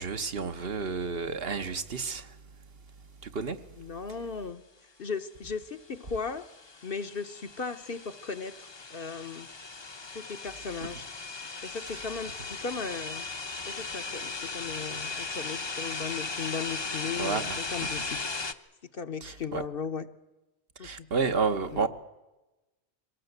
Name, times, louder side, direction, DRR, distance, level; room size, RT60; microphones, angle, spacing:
voice 1, 0.0-2.4 3.2-3.6 17.2-17.6 19.2-19.6 20.8-21.9, right 5 dB, 60° right, 1.3 m, -31 dB
voice 2, 3.8-4.6 5.0-6.4 6.8-9.5 10.1-11.1 11.6-13.2 13.6-18.2 18.9-20.1 20.8-21.1 21.7-21.9, left 5 dB, 55° left, 1.2 m, -37 dB
sound 1, 6.0-18.5, left 3 dB, 25° left, 0.8 m, -37 dB
23.5 x 18.0 x 8.0 m
omnidirectional pair, 1.1 m